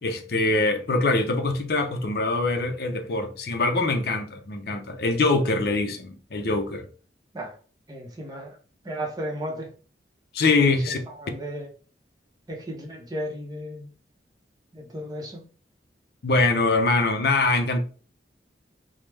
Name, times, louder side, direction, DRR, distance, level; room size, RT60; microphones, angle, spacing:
voice 1, 0.0-6.9 10.3-11.0 16.2-17.8, left 3 dB, 60° left, 0.5 m, -23 dB
voice 2, 7.9-8.6 8.8-9.7 10.6-11.7 12.5-13.9 14.7-15.4, equal, 20° right, 0.6 m, -35 dB
3.1 x 2.0 x 3.3 m
head